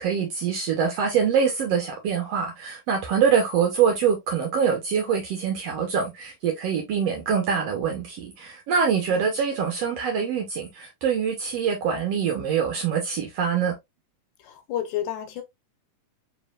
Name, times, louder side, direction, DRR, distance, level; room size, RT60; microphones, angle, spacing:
voice 1, 0.0-13.8, right 7 dB, 70° right, 1.6 m, -24 dB
voice 2, 14.4-15.4, left 11 dB, 75° left, 2.2 m, -31 dB
4.6 x 3.9 x 2.4 m
omnidirectional pair, 3.7 m